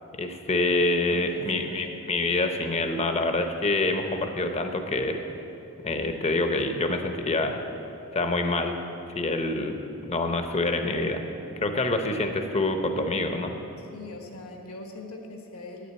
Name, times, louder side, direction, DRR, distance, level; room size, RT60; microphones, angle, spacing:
voice 1, 0.1-5.2 5.8-7.6 8.1-8.8 9.2-9.8 10.1-11.2 11.6-13.5, left 2 dB, 30° left, 6 dB, 0.8 m, -26 dB
voice 2, 1.1-2.0 11.6-11.8 13.9-15.9, left 2 dB, 70° left, 2 dB, 1.4 m, -42 dB
9.3 x 8.3 x 8.1 m, 2.9 s
head